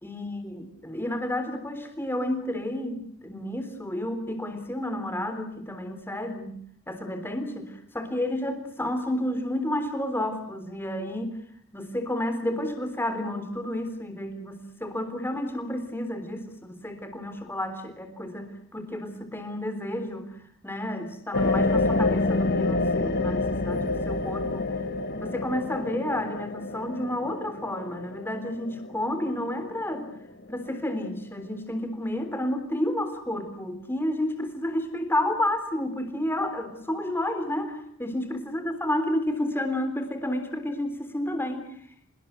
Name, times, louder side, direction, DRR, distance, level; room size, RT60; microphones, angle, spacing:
voice 1, 0.0-6.6 6.9-11.4 11.7-20.3 20.6-24.7 25.2-30.1 30.5-41.7, left 1 dB, 10° left, 7 dB, 3.6 m, -31 dB
sound 1, 21.3-30.1 30.6-30.7, left 2 dB, 50° left, 2.2 m, -28 dB
25.5 x 21.5 x 8.1 m, 0.67 s
head